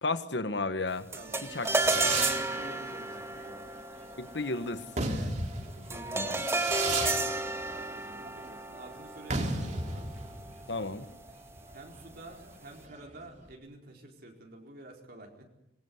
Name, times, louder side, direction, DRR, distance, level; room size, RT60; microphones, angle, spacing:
voice 1, 0.0-1.1 1.5-1.7 1.9-2.1 4.2-4.8 6.1-6.3 10.7-11.1, left 3 dB, 75° left, 11 dB, 1.5 m, -32 dB
sound 1, 1.1-10.6, right 2 dB, 15° right, 2.3 m, -33 dB
voice 2, 1.1-3.7 5.1-5.3 5.8-10.1 11.7-15.4, right 1 dB, 55° right, 1 dB, 4.6 m, -49 dB
Fireworks, 1.3-13.5, right 3 dB, 40° right, 3.6 m, -36 dB
27.0 x 22.0 x 9.6 m, 0.82 s
head